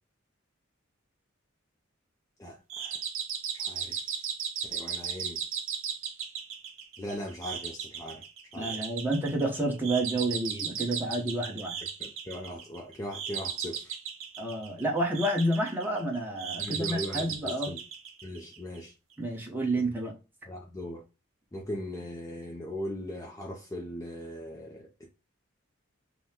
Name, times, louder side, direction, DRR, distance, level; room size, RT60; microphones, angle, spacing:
voice 1, 2.4-3.0 3.5-4.1 4.6-5.4 7.0-8.2 8.5-8.7 12.0-14.0 16.6-17.8 18.2-18.9 20.4-21.0 21.5-25.1, equal, 15° left, 0.5 m, -39 dB
sound 1, 2.7-18.8, right 7 dB, 70° right, 0.8 m, -36 dB
voice 2, 8.5-11.8 14.4-17.7 19.2-20.1, right 1 dB, 10° right, 1.1 m, -30 dB
5.5 x 2.2 x 2.8 m
head